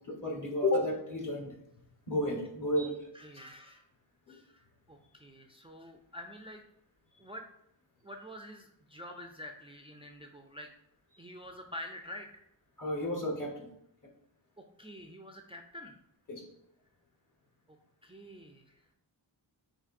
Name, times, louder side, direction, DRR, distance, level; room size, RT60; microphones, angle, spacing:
voice 1, 0.1-1.6 2.1-3.1 4.3-4.4 12.8-13.7 16.3-16.4, left 1 dB, 45° left, -1 dB, 1.1 m, -32 dB
voice 2, 3.1-3.8 4.3-6.6 7.2-7.4 8.0-10.7 11.2-12.5 14.6-16.0 17.7-17.8 18.0-18.9, left 1 dB, 15° right, 2 dB, 0.4 m, -47 dB
4.7 x 3.9 x 2.5 m, 0.75 s
wide cardioid pair, 70°, 44 cm